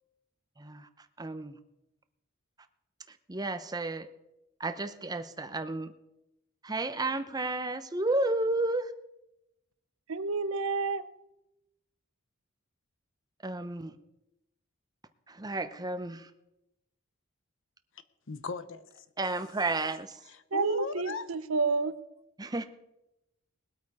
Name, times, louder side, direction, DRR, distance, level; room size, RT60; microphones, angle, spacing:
voice 1, 0.6-0.9 1.2-1.6 3.3-4.1 4.6-5.9 6.6-8.9 13.4-14.0 15.3-16.3 19.2-20.2 22.4-22.7, right 2 dB, 20° right, 10 dB, 0.7 m, -32 dB
voice 2, 10.1-11.1 20.5-21.9, right 4 dB, 70° right, 14 dB, 0.7 m, -29 dB
voice 3, 18.3-19.0 20.2-21.2, left 4 dB, 65° left, 12 dB, 0.9 m, -38 dB
20.5 x 8.5 x 4.8 m, 0.90 s
head